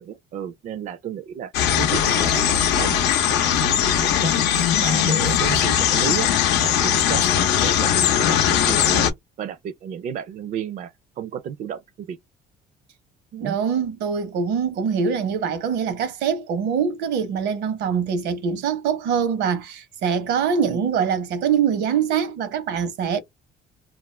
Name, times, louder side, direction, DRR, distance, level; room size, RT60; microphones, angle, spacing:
voice 1, 0.0-1.5 1.8-3.0 3.3-4.3 4.8-6.3 6.6-12.2 13.3-13.6 20.7-20.9, right 9 dB, 50° right, 0.4 m, -32 dB
sound 1, 1.5-9.1, left 9 dB, 90° left, 0.6 m, -20 dB
voice 2, 13.4-23.2, right 7 dB, 80° right, 0.8 m, -23 dB
2.4 x 2.3 x 3.1 m
cardioid pair, 110°, 17 cm